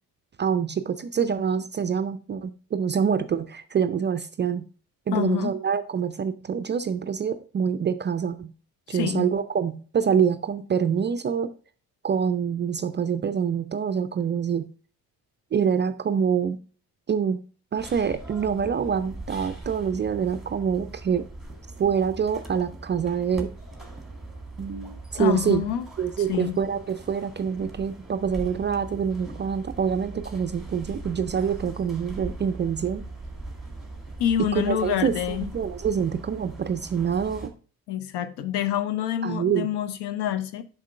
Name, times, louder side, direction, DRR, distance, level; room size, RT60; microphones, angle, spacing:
voice 1, 0.4-4.7 5.1-8.5 8.9-11.5 12.0-14.7 15.5-16.6 17.1-17.4 17.7-21.2 21.8-23.5 24.6-25.6 26.0-33.0 34.4-37.5 39.2-39.7, right 7 dB, 25° right, 0.4 m, -26 dB
voice 2, 5.1-5.5 8.9-9.3 25.2-25.9 26.2-26.6 34.2-35.5 37.9-40.6, left 10 dB, 55° left, 0.8 m, -27 dB
sound 1, 17.8-37.5, right 2 dB, ahead, 1.8 m, -40 dB
7.3 x 5.2 x 3.4 m
figure-of-eight pair, 40°, 48 cm